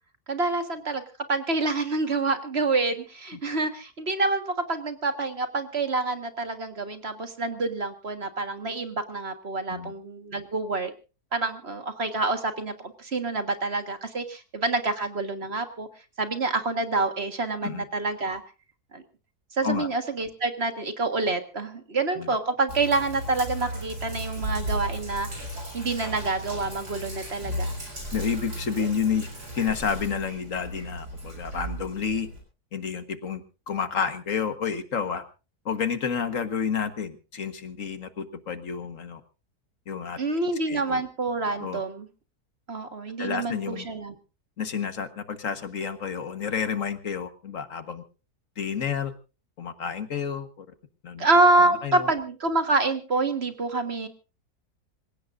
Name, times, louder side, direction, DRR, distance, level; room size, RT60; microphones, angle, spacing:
voice 1, 0.3-1.0 1.3-10.9 11.3-15.9 16.2-18.4 18.9-19.0 19.6-25.3 25.7-27.8 28.8-28.9 40.2-42.1 42.7-44.1 51.2-54.1, right 3 dB, 40° right, 7 dB, 1.8 m, -27 dB
Sink (filling or washing), 22.7-32.4, right 1 dB, 80° right, 7.7 m, -35 dB
voice 2, 28.1-29.3 29.6-32.3 32.7-35.2 35.7-39.2 39.9-40.4 40.7-41.0 41.6-41.8 43.2-43.9 44.6-48.0 48.6-49.1 49.6-50.7 51.0-51.3 51.5-52.1, left 6 dB, 55° left, 9 dB, 1.7 m, -30 dB
26.5 x 16.5 x 2.6 m, 0.33 s
omnidirectional pair, 1.7 m